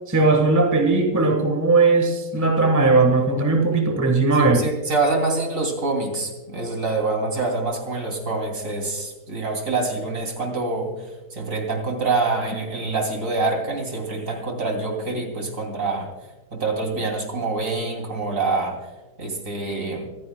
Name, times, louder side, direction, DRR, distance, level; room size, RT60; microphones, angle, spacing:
voice 1, 0.1-4.7, right 3 dB, 10° right, 1.2 m, -18 dB
voice 2, 4.3-10.9 11.3-16.1 16.5-18.8 19.2-20.1, right 3 dB, 50° right, 3.2 m, -25 dB
25.5 x 15.0 x 2.2 m
omnidirectional pair, 1.8 m